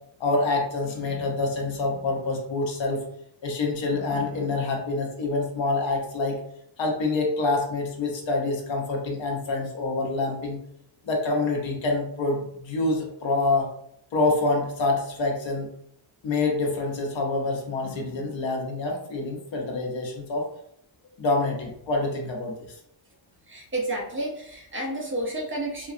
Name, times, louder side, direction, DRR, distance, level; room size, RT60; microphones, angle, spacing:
voice 1, 0.2-3.0 3.4-6.4 6.8-10.6 11.0-13.7 14.1-15.7 16.2-20.5 21.2-22.5, left 2 dB, 80° left, 0 dB, 0.9 m, -26 dB
voice 2, 23.5-25.9, right 1 dB, 25° right, -2 dB, 0.6 m, -31 dB
3.5 x 2.4 x 2.6 m, 0.72 s
wide cardioid pair, 165°, 45 cm